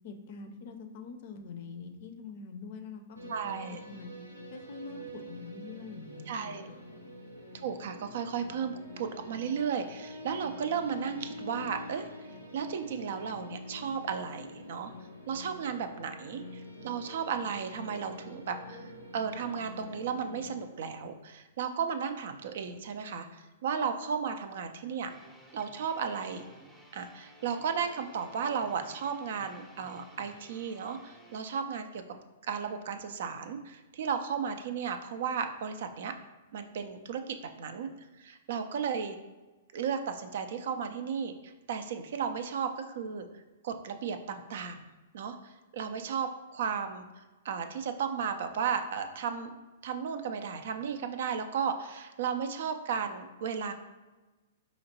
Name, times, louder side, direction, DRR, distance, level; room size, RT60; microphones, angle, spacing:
voice 1, 0.0-4.1 4.5-6.9, left 4 dB, 50° left, 6 dB, 0.4 m, -45 dB
sound 1, 3.2-20.7, left 1 dB, 85° right, 0.8 m, -46 dB
voice 2, 3.3-3.8 6.3-6.7 7.5-12.1 12.5-14.9 15.3-25.1 25.5-26.4 26.9-32.0 32.5-36.1 36.5-37.9 38.2-39.2 39.7-43.3 43.6-44.8 45.1-47.1 47.4-49.5 49.8-53.7, right 6 dB, 55° right, 8 dB, 0.3 m, -34 dB
sound 2, 25.1-31.4, equal, 5° right, 0.6 m, -55 dB
4.9 x 2.9 x 2.7 m, 1.2 s
figure-of-eight pair, 110°, 0 cm